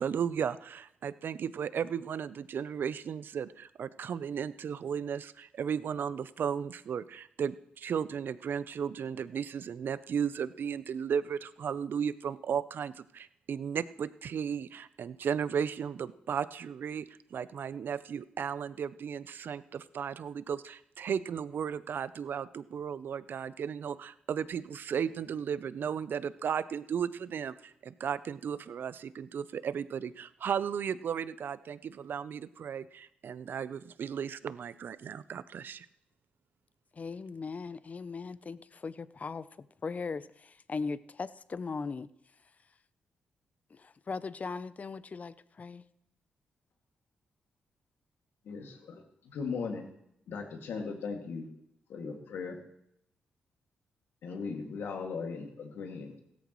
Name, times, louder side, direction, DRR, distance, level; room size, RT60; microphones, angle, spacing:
voice 1, 0.0-17.0 17.3-35.9, right 7 dB, 65° right, 16 dB, 0.6 m, -35 dB
voice 2, 37.0-39.5 39.8-42.1 43.7-45.8, left 4 dB, 40° left, 17 dB, 0.6 m, -38 dB
voice 3, 48.4-49.9 50.3-51.5 51.9-52.6 54.2-56.2, left 5 dB, 80° left, 2 dB, 2.2 m, -38 dB
16.5 x 13.5 x 3.1 m, 0.76 s
cardioid pair, 60°, 4 cm